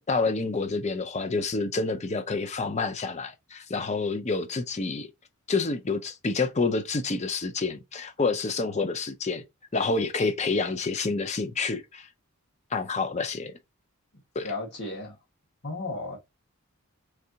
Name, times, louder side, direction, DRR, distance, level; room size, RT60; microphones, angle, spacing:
voice 1, 0.1-5.1 5.5-9.4 9.7-12.1 12.7-13.5 14.4-14.5, left 3 dB, 30° left, 0.5 m, -28 dB
voice 2, 14.4-15.2 15.6-16.2, left 2 dB, 50° left, 1.7 m, -34 dB
3.6 x 3.3 x 2.8 m
head